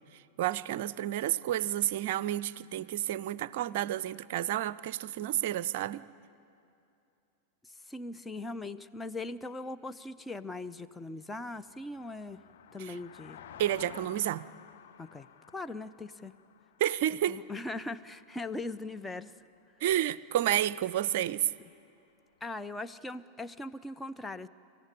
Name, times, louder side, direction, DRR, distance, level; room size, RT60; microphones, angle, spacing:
voice 1, 0.0-6.0 12.9-13.0 13.6-14.5 16.8-17.4 19.8-21.5, right 12 dB, 50° right, 19 dB, 0.5 m, -30 dB
voice 2, 7.6-12.4 12.7-13.4 15.0-16.3 17.3-19.3 22.4-24.5, left 2 dB, 10° left, 10 dB, 0.7 m, -40 dB
sound 1, 11.5-18.8 19.4-19.6, left 9 dB, 55° left, 1.1 m, -53 dB
27.0 x 15.0 x 10.0 m, 2.7 s
figure-of-eight pair, 90°, 0 cm